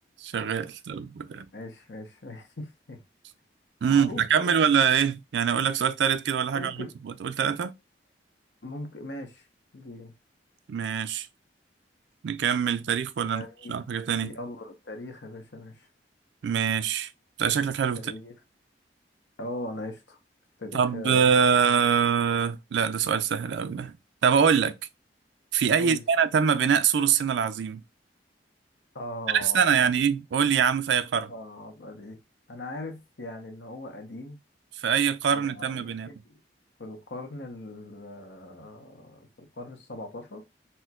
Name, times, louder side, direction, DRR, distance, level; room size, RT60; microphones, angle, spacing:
voice 1, 0.2-1.5 3.8-6.9 7.2-7.7 10.7-11.3 12.2-14.3 16.4-17.1 17.4-18.0 20.7-23.9 24.2-24.7 25.5-27.8 29.3-31.3 34.8-36.1, right 7 dB, 75° right, 0.4 m, -24 dB
voice 2, 1.5-3.0 3.9-4.5 6.5-6.9 8.6-9.5 9.7-10.1 13.3-13.8 14.2-15.9 17.9-18.3 19.4-20.2 20.6-21.4 25.7-26.0 28.9-30.0 31.3-32.2 32.5-34.4 35.3-36.4 36.8-40.4, left 1 dB, 75° left, 0.9 m, -40 dB
4.3 x 2.1 x 2.3 m
head